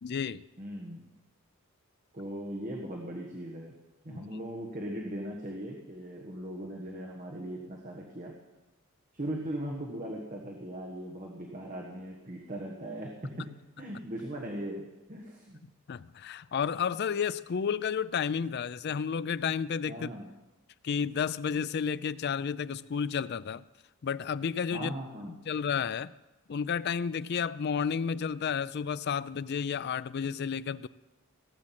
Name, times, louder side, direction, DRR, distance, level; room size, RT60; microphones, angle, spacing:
voice 1, 0.0-0.4 4.1-4.2 15.9-20.1 20.8-23.6 24.0-24.9 25.3-26.1 26.5-30.9, left 7 dB, 45° left, 16 dB, 0.4 m, -31 dB
voice 2, 0.6-1.1 2.1-3.7 4.0-8.3 9.1-13.5 13.8-15.6 19.9-20.3 24.7-25.4, right 1 dB, 35° right, -1 dB, 1.4 m, -39 dB
17.0 x 7.5 x 7.6 m, 1.1 s
head